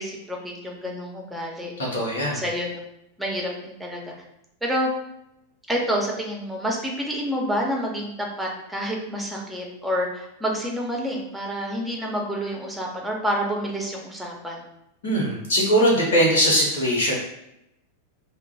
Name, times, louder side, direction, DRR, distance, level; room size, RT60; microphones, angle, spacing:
voice 1, 0.0-1.7 2.3-2.8 3.2-4.0 4.6-4.9 5.7-14.6, equal, 5° right, -1 dB, 0.7 m, -28 dB
voice 2, 1.8-2.4 15.0-17.1, equal, 60° left, -3 dB, 0.9 m, -21 dB
2.9 x 2.0 x 3.9 m, 0.83 s
figure-of-eight pair, 90°, 0 cm